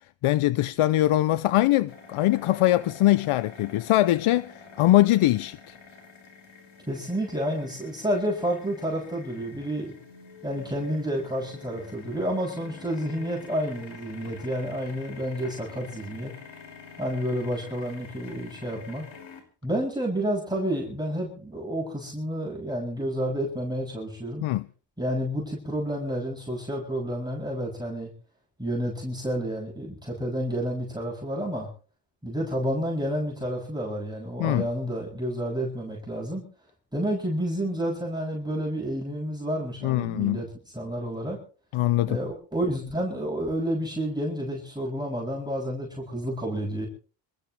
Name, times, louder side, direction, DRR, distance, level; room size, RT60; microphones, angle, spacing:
voice 1, 0.2-5.8 24.4-24.7 34.4-34.7 39.8-40.4 41.7-42.2, left 15 dB, 90° left, 0.7 m, -22 dB
sound 1, 1.9-19.4, left 5 dB, 70° left, 5.7 m, -47 dB
voice 2, 6.9-9.9 10.4-16.3 17.0-19.1 19.6-24.4 25.0-28.1 28.6-31.7 32.2-36.4 36.9-40.5 40.7-41.4 42.1-46.9, equal, 10° right, 7.6 m, -30 dB
27.0 x 15.0 x 3.4 m
cardioid pair, 90°, 49 cm